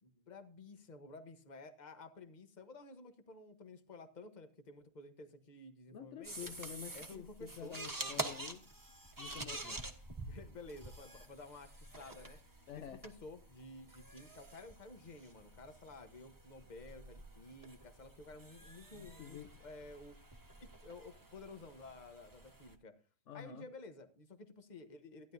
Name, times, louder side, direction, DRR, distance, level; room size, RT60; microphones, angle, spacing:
voice 1, 0.0-6.5 6.9-8.2 10.2-12.4 12.8-20.2 20.6-22.9 23.3-25.3, left 2 dB, 35° left, 8 dB, 1.2 m, -53 dB
voice 2, 5.9-8.7 9.2-9.9 12.7-13.0 18.9-19.5 23.3-23.7, left 9 dB, 70° left, 8 dB, 1.0 m, -49 dB
sound 1, 6.2-22.7, right 2 dB, 15° right, 1.2 m, -48 dB
15.5 x 10.5 x 2.7 m, 0.41 s
omnidirectional pair, 1.4 m